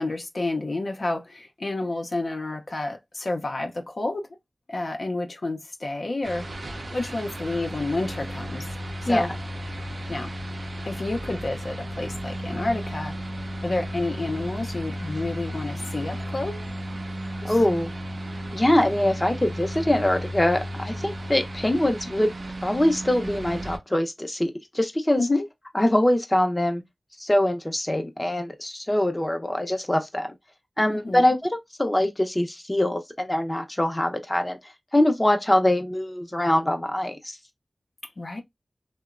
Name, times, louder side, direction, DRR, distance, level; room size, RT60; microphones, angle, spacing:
voice 1, 0.0-4.3 4.7-6.5 6.9-8.7 9.0-9.3 10.1-10.3 10.8-13.2 13.6-16.7 17.4-17.5 25.2-25.5 30.9-31.2 38.0-38.4, left 2 dB, 65° left, 0.5 m, -29 dB
sound 1, 6.2-23.8, equal, 75° right, 0.5 m, -34 dB
voice 2, 17.4-17.9 18.5-22.3 22.6-25.3 25.7-26.8 27.2-30.3 30.8-34.6 34.9-37.4, left 1 dB, 25° left, 0.6 m, -23 dB
2.8 x 2.0 x 2.4 m
cardioid pair, 40°, 0 cm